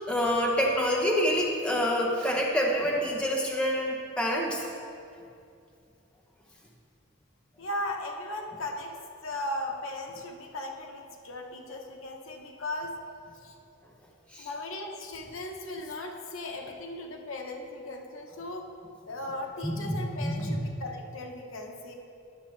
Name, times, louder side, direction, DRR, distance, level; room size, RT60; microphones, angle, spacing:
voice 1, 0.1-4.7 14.3-14.5 19.6-20.6, equal, 5° left, -2 dB, 0.7 m, -27 dB
voice 2, 7.6-8.9 9.2-12.9 13.4-13.5 14.4-18.6 19.1-21.9, left 1 dB, 85° left, 2 dB, 0.9 m, -37 dB
10.5 x 6.6 x 3.2 m, 2.5 s
head